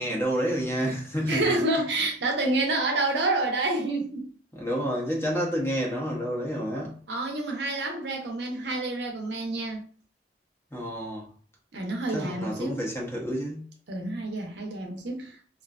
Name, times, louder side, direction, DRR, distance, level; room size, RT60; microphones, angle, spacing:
voice 1, 0.0-1.5 4.5-7.0 10.7-11.3 12.1-13.7, equal, 15° left, 0.6 m, -29 dB
voice 2, 1.3-4.3 7.1-9.8 11.7-12.8 13.9-15.4, right 2 dB, 70° right, 0.6 m, -28 dB
2.5 x 2.4 x 2.3 m
head